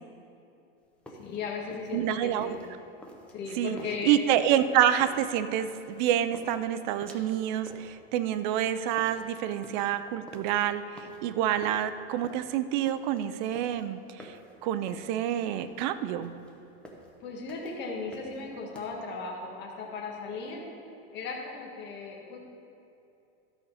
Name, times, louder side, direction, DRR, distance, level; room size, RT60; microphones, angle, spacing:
sound 1, 0.8-18.9, equal, 5° left, 0.8 m, -49 dB
voice 1, 1.1-2.6 3.3-4.2 17.2-20.6 21.1-22.4, left 4 dB, 35° left, -2 dB, 1.7 m, -37 dB
voice 2, 1.9-2.6 3.6-3.8 4.0-10.8 11.2-14.3 14.6-16.3, right 11 dB, 50° right, 12 dB, 0.5 m, -27 dB
12.0 x 5.5 x 6.5 m, 2.7 s
supercardioid pair, 160°, 30 cm